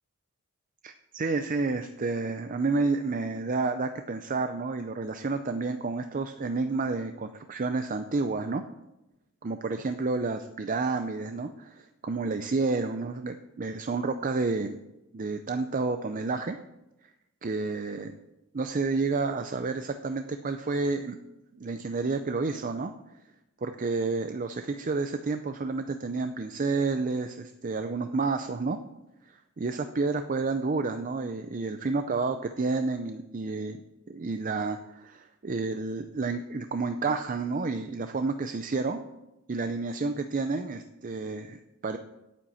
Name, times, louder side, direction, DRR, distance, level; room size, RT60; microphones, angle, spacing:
voice 1, 0.8-8.6 9.4-14.8 15.1-16.6 17.4-18.2 18.5-21.2 21.6-22.9 23.6-28.8 29.3-33.8 34.1-39.0 39.5-42.0, right 3 dB, 35° right, 8 dB, 0.5 m, -30 dB
8.9 x 8.9 x 7.1 m, 0.96 s
head